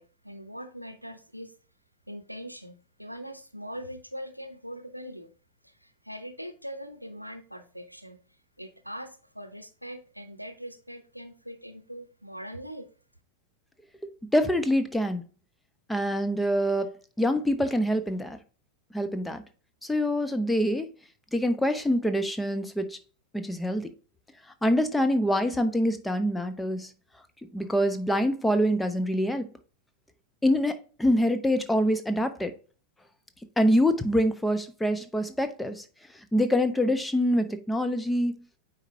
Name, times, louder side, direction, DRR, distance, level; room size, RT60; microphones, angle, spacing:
voice 1, 0.0-1.5 2.1-5.3 5.6-8.2 8.6-12.9, equal, 90° right, 0.7 m, -41 dB
voice 2, 14.3-15.2 15.9-18.4 18.9-19.4 19.8-20.9 21.3-23.0 23.3-23.9 24.6-26.9 27.5-29.5 30.4-32.5 33.6-35.8 36.3-38.4, equal, 5° left, 0.8 m, -25 dB
9.0 x 4.2 x 2.7 m
figure-of-eight pair, 90°, 0 cm